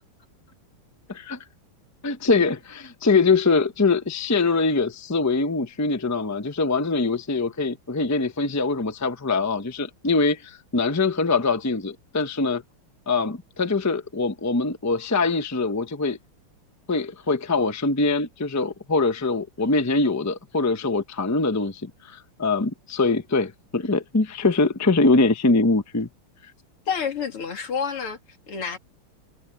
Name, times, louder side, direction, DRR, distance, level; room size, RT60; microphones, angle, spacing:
voice 1, 2.0-12.6 13.1-16.2 16.9-26.1, left 3 dB, 15° left, 0.5 m, -23 dB
voice 2, 26.9-28.2 28.5-28.8, left 6 dB, 85° left, 3.5 m, -28 dB
omnidirectional pair, 2.4 m